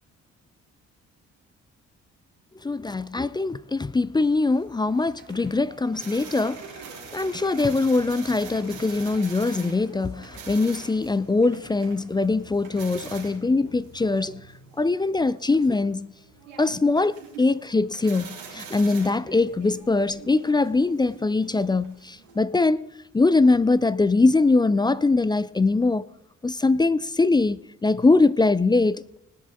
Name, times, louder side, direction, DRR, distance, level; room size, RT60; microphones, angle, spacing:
voice 1, 2.6-6.7 7.1-14.4 14.8-16.1 16.6-22.9 23.1-26.1 26.4-29.2, left 3 dB, 10° left, 0.4 m, -22 dB
sound 1, 4.5-22.4, right 6 dB, 75° right, 2.6 m, -44 dB
19.0 x 9.5 x 4.0 m
figure-of-eight pair, 40°, 39 cm